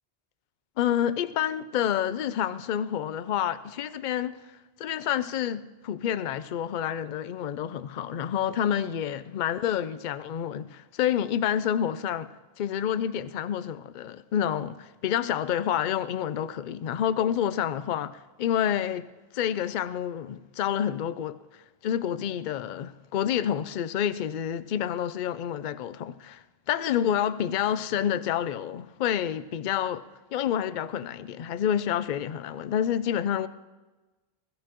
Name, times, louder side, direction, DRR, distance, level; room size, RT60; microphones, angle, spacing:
voice 1, 0.8-4.4 4.8-19.1 19.3-21.4 21.8-33.5, left 9 dB, 55° left, 0.6 m, -28 dB
21.0 x 14.5 x 3.0 m
omnidirectional pair, 1.0 m